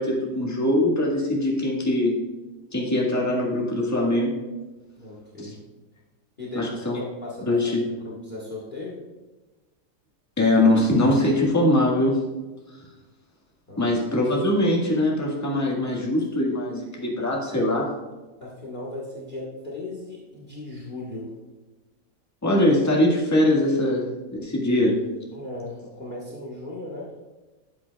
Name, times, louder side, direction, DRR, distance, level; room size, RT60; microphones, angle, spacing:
voice 1, 0.0-2.2 2.7-4.3 5.4-5.5 6.5-7.0 7.4-7.8 10.4-12.2 13.8-17.9 22.4-25.0, left 1 dB, 10° left, -3 dB, 1.6 m, -22 dB
voice 2, 5.0-5.6 6.4-7.6 8.0-9.0 13.7-14.0 18.4-21.3 25.3-27.1, left 2 dB, 30° left, -3 dB, 1.5 m, -37 dB
13.0 x 8.4 x 2.3 m, 1.2 s
omnidirectional pair, 1.8 m